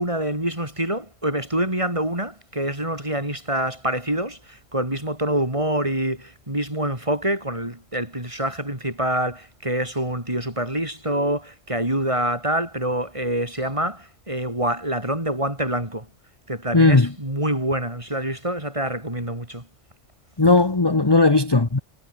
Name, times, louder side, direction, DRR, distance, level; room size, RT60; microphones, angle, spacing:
voice 1, 0.0-16.1 16.5-19.7, right 1 dB, 25° right, 5.3 m, -26 dB
voice 2, 16.7-17.1 20.4-21.8, left 3 dB, 20° left, 1.2 m, -17 dB
omnidirectional pair, 1.2 m